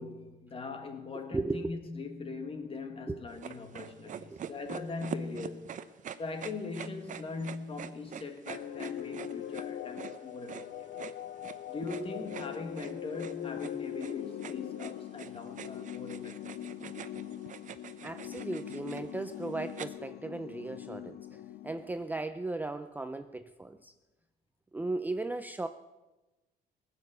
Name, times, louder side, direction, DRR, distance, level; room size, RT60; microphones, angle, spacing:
voice 1, 0.0-10.9 11.7-16.6, left 3 dB, 35° left, 2.0 m, -41 dB
voice 2, 1.3-1.7 3.1-3.2 4.3-4.4 18.0-23.9 24.7-25.7, right 2 dB, 10° right, 0.5 m, -36 dB
sound 1, 3.4-19.9, right 9 dB, 50° right, 0.7 m, -45 dB
sound 2, 8.5-22.2, left 11 dB, 65° left, 0.6 m, -42 dB
19.0 x 7.6 x 8.0 m
cardioid pair, 120°, 17 cm